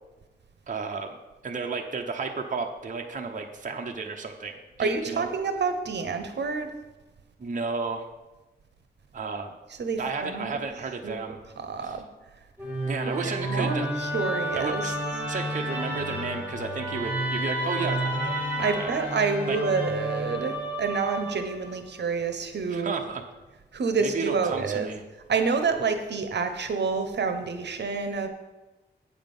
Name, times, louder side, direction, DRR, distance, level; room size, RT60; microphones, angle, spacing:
voice 1, 0.7-1.2 1.4-5.3 7.4-8.1 9.1-9.5 10.0-11.4 11.8-11.9 12.8-13.9 14.5-14.9 15.3-18.4 18.7-18.9 19.5-19.6 22.7-23.2 24.0-25.0, right 4 dB, 45° right, 3 dB, 0.8 m, -33 dB
voice 2, 4.8-6.7 9.8-10.5 11.0-11.1 11.6-12.0 13.3-14.9 18.6-22.9 23.7-24.9 25.3-28.3, right 5 dB, 70° right, 7 dB, 1.0 m, -28 dB
Musical instrument, 12.6-21.8, right 1 dB, 10° right, 2.3 m, -31 dB
8.9 x 7.4 x 5.4 m, 1.1 s
wide cardioid pair, 120°, 18 cm